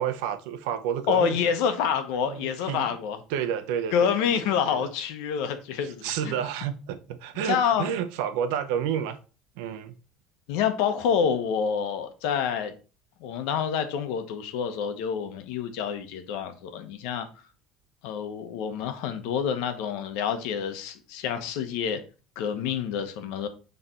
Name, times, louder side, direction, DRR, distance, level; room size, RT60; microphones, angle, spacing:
voice 1, 0.0-1.5 2.3-2.9 3.3-4.9 5.8-9.2 9.6-9.9, right 9 dB, 85° right, 0.8 m, -30 dB
voice 2, 1.1-3.2 3.9-6.3 7.4-8.0 10.5-12.7 13.2-17.3 18.0-22.0 22.4-23.5, left 7 dB, 75° left, 1.0 m, -27 dB
6.7 x 3.4 x 4.3 m
cardioid pair, 170°, 0 cm